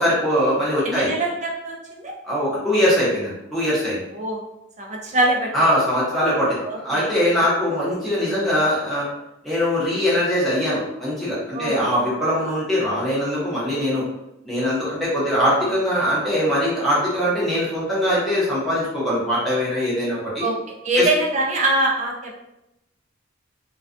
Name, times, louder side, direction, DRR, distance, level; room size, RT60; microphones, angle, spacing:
voice 1, 0.0-1.1 2.2-4.0 5.5-9.1 9.4-14.0 14.4-20.4 21.0-21.1, equal, ahead, -9 dB, 0.8 m, -22 dB
voice 2, 0.8-2.1 4.1-4.4 4.8-5.5 6.6-7.1 7.4-7.5 11.5-11.9 20.4-20.5 20.8-22.4, right 1 dB, 35° right, 0 dB, 0.4 m, -23 dB
2.3 x 2.2 x 2.4 m, 0.87 s
head